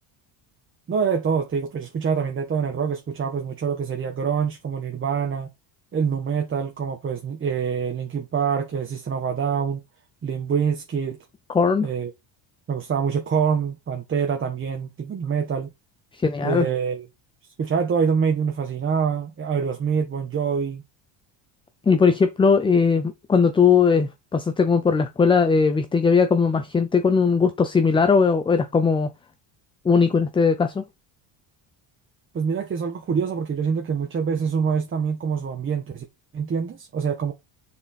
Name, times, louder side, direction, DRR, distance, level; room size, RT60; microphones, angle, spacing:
voice 1, 0.9-5.5 5.9-9.8 10.2-11.2 11.8-12.1 12.7-15.7 16.4-17.1 17.6-20.8 32.3-36.0 36.3-37.3, right 6 dB, 25° right, 1.3 m, -25 dB
voice 2, 11.5-11.9 16.2-16.7 21.9-29.1 29.8-30.8, left 5 dB, 10° left, 0.4 m, -19 dB
7.1 x 5.8 x 4.2 m
cardioid pair, 160°, 48 cm